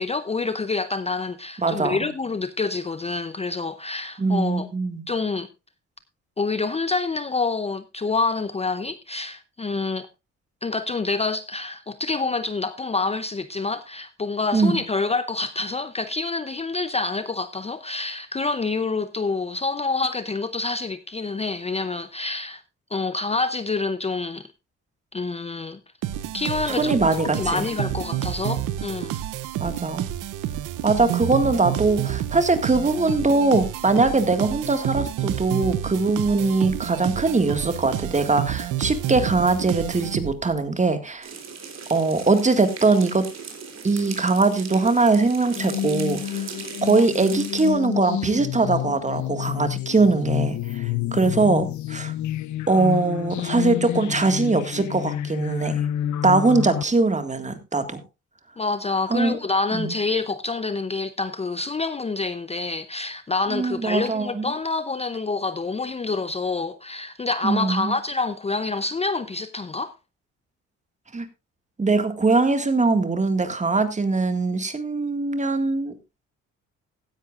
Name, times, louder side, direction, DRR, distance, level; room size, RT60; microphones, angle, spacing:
voice 1, 0.0-4.7 5.1-5.5 6.4-10.1 10.6-22.6 22.9-24.5 25.1-25.8 26.3-29.2 58.6-69.9, left 3 dB, 20° left, 0.6 m, -27 dB
voice 2, 1.6-2.0 4.2-5.0 14.5-14.8 26.6-27.7 29.6-30.1 30.8-41.3 41.9-43.3 43.8-46.5 46.8-52.1 52.7-55.8 56.2-58.0 59.1-59.4 59.7-59.9 63.5-64.5 67.4-67.9 71.1-71.3 71.8-76.0, right 3 dB, 25° right, 1.9 m, -21 dB
sound 1, 26.0-40.6, right 12 dB, 90° right, 0.8 m, -29 dB
sound 2, 41.2-47.7, right 5 dB, 60° right, 3.7 m, -38 dB
sound 3, 45.5-56.8, left 12 dB, 70° left, 0.7 m, -29 dB
16.0 x 10.5 x 2.5 m
cardioid pair, 90°, 30 cm